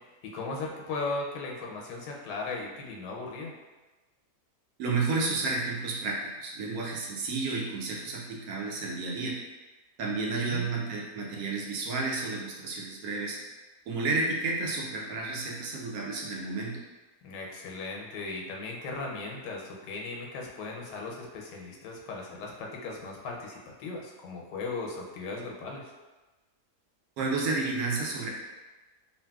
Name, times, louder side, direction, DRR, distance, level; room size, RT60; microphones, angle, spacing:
voice 1, 0.0-3.5 10.4-10.7 17.2-25.9, left 3 dB, 90° left, -1 dB, 1.2 m, -37 dB
voice 2, 4.8-9.4 10.0-13.4 13.9-16.8 27.2-28.3, right 3 dB, 70° right, -2 dB, 1.0 m, -31 dB
2.8 x 2.7 x 2.2 m, 1.2 s
omnidirectional pair, 1.8 m